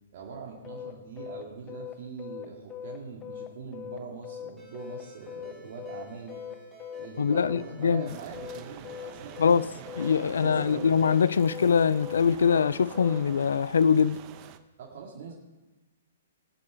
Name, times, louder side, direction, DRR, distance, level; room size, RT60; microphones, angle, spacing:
voice 1, 0.1-6.4 6.9-9.6 10.4-11.1 14.8-15.3, right 5 dB, 50° right, 2.3 m, -42 dB
sound 1, 0.6-13.2, left 9 dB, 25° left, 1.0 m, -40 dB
Ringtone, 4.6-11.4, right 2 dB, 10° right, 4.5 m, -55 dB
voice 2, 7.2-8.1 9.4-9.7 10.0-14.2, left 6 dB, 70° left, 0.4 m, -23 dB
sound 2, 8.1-14.6, right 11 dB, 35° right, 0.9 m, -47 dB
19.5 x 8.6 x 4.7 m
figure-of-eight pair, 120°, 0 cm